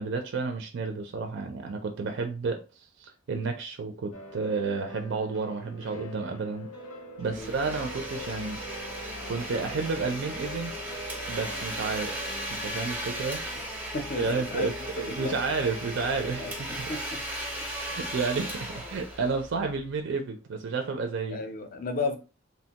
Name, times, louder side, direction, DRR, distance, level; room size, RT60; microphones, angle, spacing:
voice 1, 0.0-6.7 7.2-8.6 9.3-10.7 11.3-12.1 12.6-13.4 14.2-16.5 16.8-16.9 17.9-21.4, right 4 dB, 60° right, 0.4 m, -31 dB
sound 1, 4.1-14.0, equal, 85° left, 0.7 m, -44 dB
Domestic sounds home sounds, 7.2-19.8, equal, 10° right, 0.5 m, -36 dB
voice 2, 13.9-15.4 16.4-16.5 16.9-17.2 21.3-22.2, left 3 dB, 45° left, 0.5 m, -34 dB
2.9 x 2.1 x 2.8 m
head